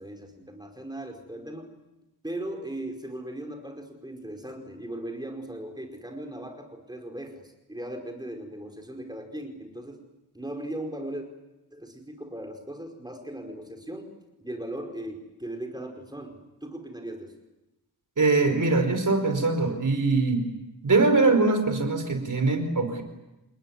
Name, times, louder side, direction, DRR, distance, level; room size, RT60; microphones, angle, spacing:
voice 1, 0.0-1.7 2.2-10.0 10.3-11.3 11.7-14.1 14.4-17.3, right 1 dB, 10° right, 3 dB, 4.9 m, -38 dB
voice 2, 18.2-20.4 20.8-23.0, right 3 dB, 50° right, 7 dB, 4.9 m, -22 dB
29.5 x 20.0 x 9.6 m, 0.98 s
wide cardioid pair, 130°, 39 cm